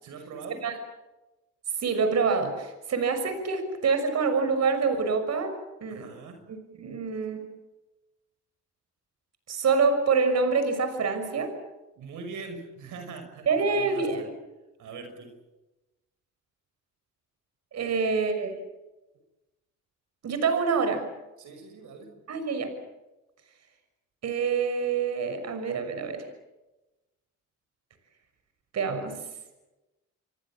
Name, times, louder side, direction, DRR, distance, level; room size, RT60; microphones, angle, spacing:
voice 1, 0.0-0.6 5.9-6.4 12.0-14.2 14.8-15.3 17.8-18.1 21.4-22.1 25.4-25.5, right 4 dB, 80° right, 6 dB, 6.0 m, -42 dB
voice 2, 1.8-5.5 5.8-6.1 6.5-7.4 9.5-11.5 13.5-14.3 17.7-18.5 20.2-21.0 22.3-22.7 24.2-26.3 28.7-29.2, right 5 dB, 60° right, 8 dB, 6.2 m, -26 dB
28.5 x 23.5 x 7.5 m, 1.0 s
cardioid pair, 90°, 30 cm